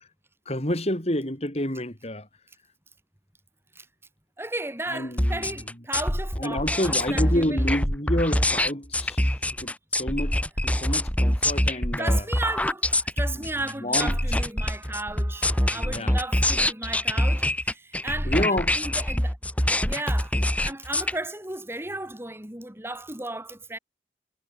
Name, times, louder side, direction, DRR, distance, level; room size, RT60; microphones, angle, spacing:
voice 1, 0.5-2.3 4.9-5.5 6.4-9.3 9.6-9.7 10.0-10.4 10.6-12.2 13.3-13.4 13.8-14.2 15.7-16.1 18.3-18.8, left 1 dB, 35° left, 6.0 m, -28 dB
voice 2, 4.4-7.6 12.0-19.4 19.8-23.8, right 2 dB, 15° right, 4.5 m, -35 dB
sound 1, 5.2-21.1, left 1 dB, 10° left, 3.1 m, -25 dB
head